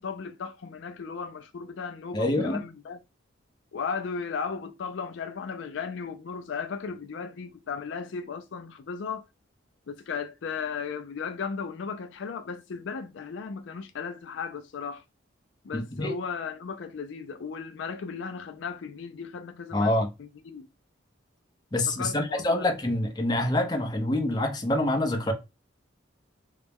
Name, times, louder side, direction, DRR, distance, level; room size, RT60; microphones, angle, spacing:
voice 1, 0.0-3.0 3.7-9.3 9.9-15.0 15.6-19.9 20.2-20.7 21.9-22.7, left 5 dB, 65° left, 0.4 m, -36 dB
voice 2, 2.1-2.6 15.7-16.1 19.7-20.1 21.7-25.3, left 1 dB, 20° left, 0.6 m, -26 dB
4.0 x 2.2 x 3.5 m
head